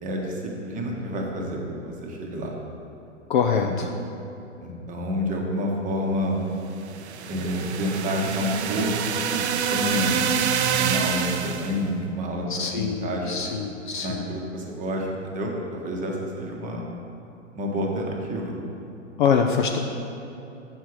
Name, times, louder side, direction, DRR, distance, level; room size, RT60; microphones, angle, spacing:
voice 1, 0.0-2.6 3.6-3.7 4.6-6.4 7.3-9.4 9.7-10.1 10.8-12.4 12.7-13.4 14.0-16.8 17.5-18.6, equal, 20° right, 0 dB, 1.0 m, -29 dB
voice 2, 3.3-3.9 12.5-14.3 19.2-19.8, left 6 dB, 40° left, 4 dB, 0.4 m, -24 dB
sound 1, 6.9-11.8, right 7 dB, 55° right, 0.6 m, -26 dB
7.4 x 4.5 x 6.1 m, 2.9 s
figure-of-eight pair, 115°, 39 cm